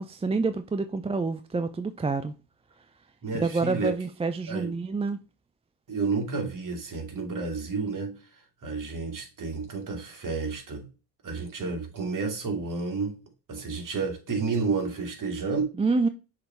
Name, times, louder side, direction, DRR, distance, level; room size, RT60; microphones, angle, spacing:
voice 1, 0.0-2.4 3.3-5.2 15.8-16.1, right 3 dB, 15° right, 0.5 m, -27 dB
voice 2, 3.2-3.9 4.5-4.8 5.9-8.2 8.6-10.9 11.2-13.2 13.5-15.7, right 4 dB, 40° right, 2.5 m, -31 dB
6.5 x 3.5 x 4.5 m
supercardioid pair, 70°, 47 cm